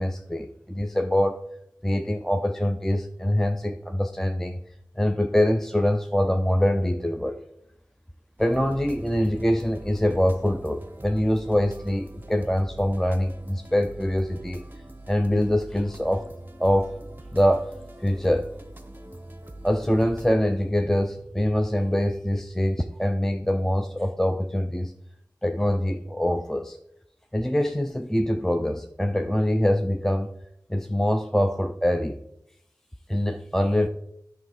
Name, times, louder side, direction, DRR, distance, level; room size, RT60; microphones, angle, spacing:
voice 1, 0.0-1.4 1.8-4.6 5.0-7.4 8.4-14.6 15.1-16.3 16.6-16.9 17.3-17.7 18.0-18.5 19.6-24.9 25.4-26.8 27.3-30.3 30.7-32.2 33.1-33.9, equal, 5° left, 7 dB, 0.5 m, -24 dB
sound 1, 8.4-20.3, right 1 dB, 25° right, 0.9 m, -43 dB
9.9 x 3.5 x 6.3 m, 0.78 s
wide cardioid pair, 45°, 8 cm